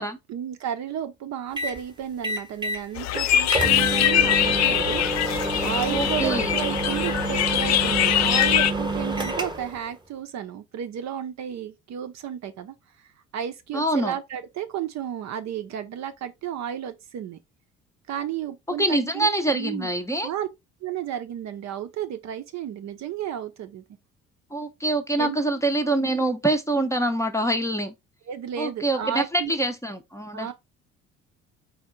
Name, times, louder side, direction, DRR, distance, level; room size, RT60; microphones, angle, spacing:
voice 1, 0.0-5.0 5.6-17.4 18.1-19.3 19.5-19.9 20.2-20.5 20.8-23.8 25.2-25.4 28.3-29.5 30.3-30.5, right 10 dB, 45° right, 0.6 m, -33 dB
sound 1, 1.6-1.8 2.2-2.8 3.2-3.3 3.5-9.8, right 2 dB, 10° right, 1.0 m, -28 dB
sound 2, 3.0-8.7, left 11 dB, 45° left, 0.5 m, -23 dB
voice 2, 5.9-6.5 13.7-14.1 18.8-20.3 24.5-27.9 28.6-30.5, right 2 dB, 10° left, 0.7 m, -25 dB
4.4 x 2.8 x 3.7 m
figure-of-eight pair, 55°, 39 cm